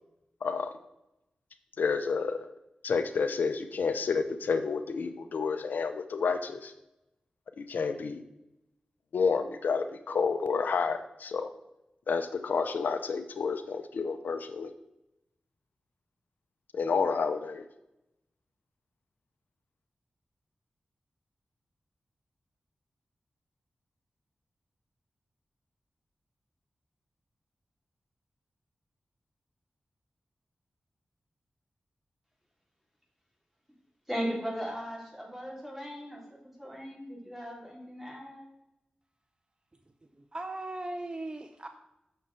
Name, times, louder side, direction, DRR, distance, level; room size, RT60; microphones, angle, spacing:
voice 1, 0.4-0.7 1.8-2.5 2.8-6.7 7.6-8.2 9.1-11.5 12.1-14.7 16.7-17.6, left 5 dB, 85° left, 9 dB, 0.6 m, -30 dB
voice 2, 34.1-38.5, equal, 5° right, -2 dB, 3.4 m, -37 dB
voice 3, 40.3-41.7, right 2 dB, 30° right, 6 dB, 0.6 m, -37 dB
7.3 x 6.5 x 4.2 m, 0.89 s
cardioid pair, 50°, 3 cm